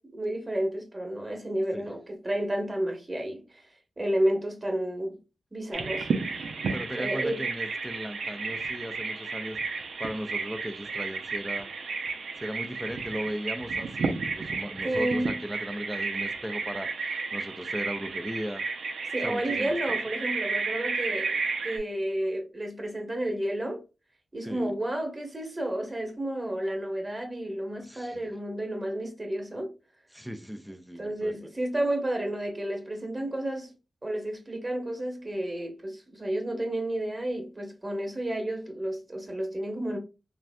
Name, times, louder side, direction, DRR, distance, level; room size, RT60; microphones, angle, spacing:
voice 1, 0.0-3.7 4.0-5.2 5.5-6.1 6.9-7.4 14.8-15.4 19.1-23.8 24.3-29.7 31.0-33.7 34.0-40.0, right 1 dB, 30° right, 1.1 m, -31 dB
Bird vocalization bird call bird song, 5.7-21.8, right 4 dB, 80° right, 0.5 m, -32 dB
voice 2, 6.7-9.6 10.0-11.7 12.4-18.6 19.2-20.0 24.4-24.7 27.8-28.3 30.1-31.4, equal, 5° right, 0.5 m, -37 dB
3.1 x 2.6 x 2.2 m
cardioid pair, 40°, 0 cm